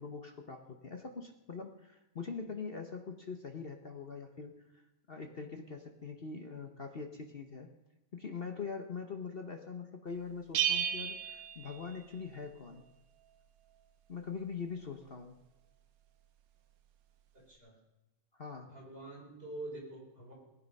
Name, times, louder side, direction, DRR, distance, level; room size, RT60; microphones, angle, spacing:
voice 1, 0.0-4.8 5.1-7.7 8.1-12.8 14.1-15.4 18.3-18.7, left 5 dB, 45° left, 5 dB, 0.7 m, -43 dB
Bell, 10.5-12.4, right 9 dB, 85° right, 1.9 m, -34 dB
voice 2, 17.3-17.8 18.6-20.3, right 2 dB, 25° right, -3 dB, 5.0 m, -46 dB
19.0 x 9.8 x 5.4 m, 1.0 s
omnidirectional pair, 2.4 m